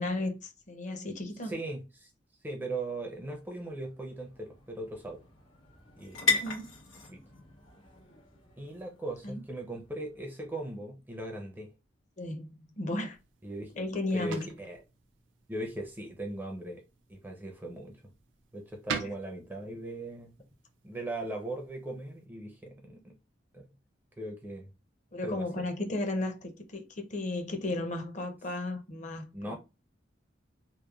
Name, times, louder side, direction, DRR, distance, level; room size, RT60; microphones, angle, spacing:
voice 1, 0.0-1.5 6.3-6.8 9.2-9.4 12.2-13.2 13.7-14.5 19.0-19.1 25.1-29.5, left 2 dB, 40° left, 0.5 m, -34 dB
voice 2, 1.4-2.1 2.4-5.2 6.0-6.3 7.1-7.2 8.6-11.7 13.4-13.8 14.1-14.8 15.5-16.8 17.1-18.0 18.5-20.3 20.8-23.1 23.5-23.7 24.2-24.7 25.2-25.6 29.3-29.5, right 2 dB, 10° right, 0.4 m, -39 dB
sound 1, 2.7-10.5, left 3 dB, 90° left, 1.2 m, -38 dB
sound 2, 13.1-22.3, right 6 dB, 85° right, 0.4 m, -46 dB
2.9 x 2.0 x 2.3 m
head